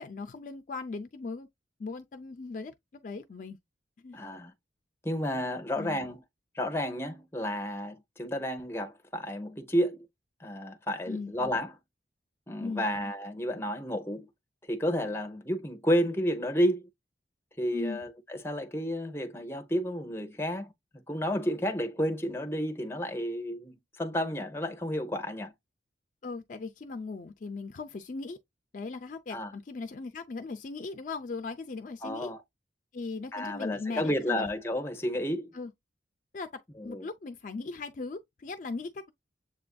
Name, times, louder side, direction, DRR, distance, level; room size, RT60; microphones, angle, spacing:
voice 1, 0.0-1.5 1.8-3.6 4.0-4.2 5.8-6.0 11.1-11.3 12.6-12.9 17.7-18.0 26.2-28.4 28.7-32.3 32.9-34.5 35.5-35.7 36.3-39.1, left 4 dB, 45° left, 0.4 m, -38 dB
voice 2, 4.1-4.5 5.0-6.2 6.5-10.1 10.4-11.7 12.5-14.3 14.7-16.8 17.6-25.5 29.3-29.5 32.0-32.4 33.3-35.5 36.8-37.0, equal, 15° left, 0.7 m, -31 dB
7.5 x 2.5 x 2.2 m
head